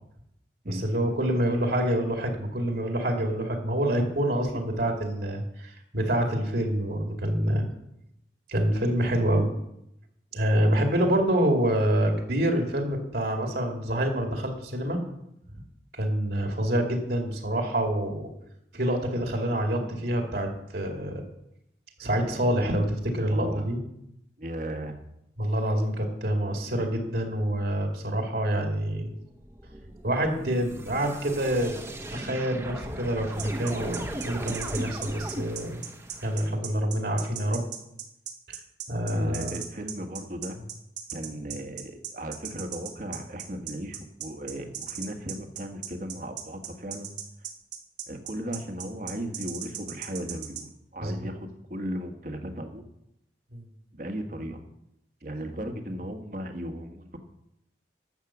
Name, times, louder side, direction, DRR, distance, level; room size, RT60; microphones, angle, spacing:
voice 1, 0.7-7.7 8.5-9.5 10.3-15.0 15.9-18.3 18.7-21.1 22.0-23.8 25.4-29.1 30.0-31.8 32.1-35.8 36.2-37.6 38.5-38.6 38.9-39.6 51.0-51.1 53.5-53.6, right 1 dB, 60° right, 3 dB, 2.3 m, -27 dB
voice 2, 23.3-23.7 24.4-25.0 39.1-40.6 41.1-47.1 48.1-52.8 53.9-54.6 55.2-57.2, right 1 dB, 45° right, 6 dB, 1.4 m, -36 dB
sound 1, 29.4-36.5, right 1 dB, 15° right, 1.1 m, -38 dB
sound 2, 33.4-50.6, right 10 dB, 90° right, 1.8 m, -37 dB
12.0 x 7.4 x 7.2 m, 0.81 s
head